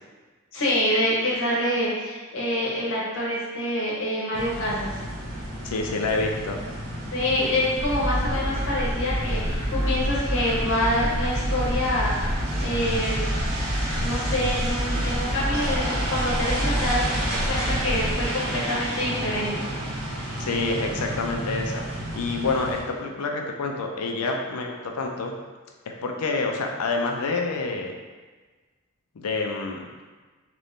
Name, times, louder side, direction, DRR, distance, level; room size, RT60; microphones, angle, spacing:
voice 1, 0.5-5.0 7.1-13.2 13.9-17.1 17.5-19.5, left 1 dB, 60° left, -5 dB, 0.8 m, -26 dB
sound 1, 4.3-22.8, right 1 dB, 65° right, 1.1 m, -31 dB
voice 2, 5.6-6.6 20.4-25.3 26.0-28.0 29.2-29.8, left 3 dB, 80° left, 2 dB, 0.5 m, -27 dB
sound 2, 7.8-18.2, equal, 10° left, 1.0 m, -28 dB
3.0 x 2.6 x 3.5 m, 1.3 s
head